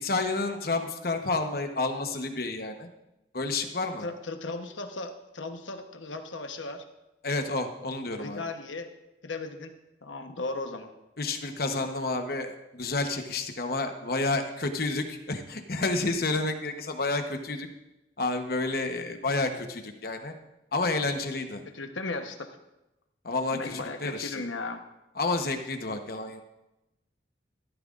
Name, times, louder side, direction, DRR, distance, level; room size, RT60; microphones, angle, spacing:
voice 1, 0.0-2.9 3.3-4.1 7.2-8.4 11.2-17.7 18.2-20.3 20.7-21.6 23.2-24.4 25.2-26.4, left 3 dB, 50° left, 6 dB, 1.0 m, -30 dB
voice 2, 4.0-6.8 8.1-8.9 9.2-9.7 10.0-10.9 21.7-22.6 23.5-24.8, left 3 dB, 90° left, 6 dB, 1.1 m, -36 dB
15.0 x 13.0 x 2.5 m, 0.96 s
head